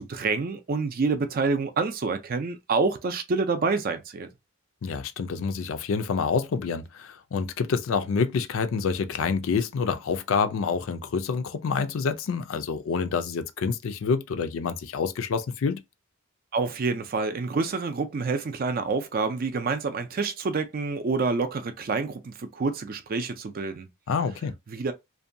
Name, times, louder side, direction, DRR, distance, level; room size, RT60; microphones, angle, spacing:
voice 1, 0.0-4.3 16.5-23.9 24.7-24.9, right 4 dB, 40° right, 0.4 m, -27 dB
voice 2, 4.8-15.8 24.1-24.5, left 5 dB, 65° left, 0.4 m, -27 dB
2.6 x 2.2 x 2.5 m
head